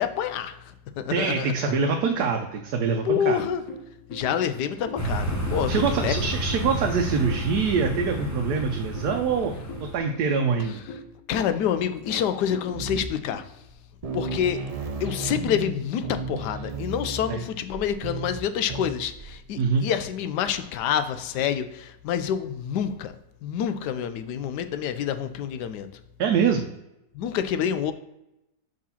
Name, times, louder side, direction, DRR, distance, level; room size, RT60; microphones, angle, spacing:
voice 1, 0.0-1.7 3.0-3.6 4.1-6.2 11.3-13.5 14.1-14.7 15.0-23.1 23.4-25.9 27.1-27.9, left 9 dB, 90° left, 10 dB, 1.2 m, -27 dB
voice 2, 1.1-3.4 5.7-9.5 9.9-10.8 17.3-17.4 19.6-19.9 26.2-26.7, right 5 dB, 75° right, 3 dB, 1.2 m, -24 dB
sound 1, 3.4-13.3, left 1 dB, 65° left, 1.5 m, -41 dB
sound 2, 4.9-10.0, right 1 dB, 15° left, 0.7 m, -30 dB
sound 3, 12.7-13.3 13.7-13.8 14.0-19.4, right 3 dB, 60° right, 0.3 m, -34 dB
5.1 x 4.0 x 5.6 m, 0.89 s
omnidirectional pair, 1.7 m